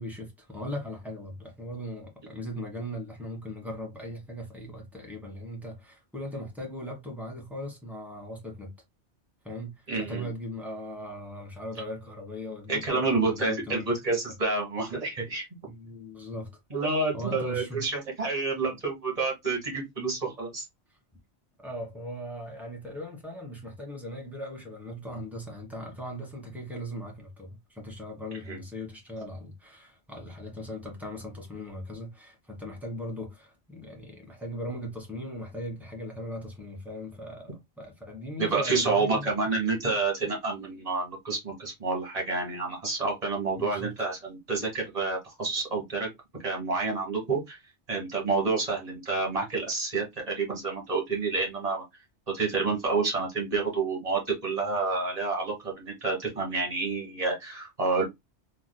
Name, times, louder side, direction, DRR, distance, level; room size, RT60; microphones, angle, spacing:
voice 1, 0.0-8.7 9.4-13.9 15.7-16.6 17.1-17.8 21.6-39.3 43.6-43.9, equal, ahead, 1.4 m, -39 dB
voice 2, 9.9-10.3 12.7-15.4 16.7-20.6 28.5-28.6 38.4-46.1 46.4-47.6 47.9-51.8 52.3-58.0, right 3 dB, 35° right, 1.5 m, -29 dB
3.6 x 3.0 x 2.2 m
omnidirectional pair, 1.2 m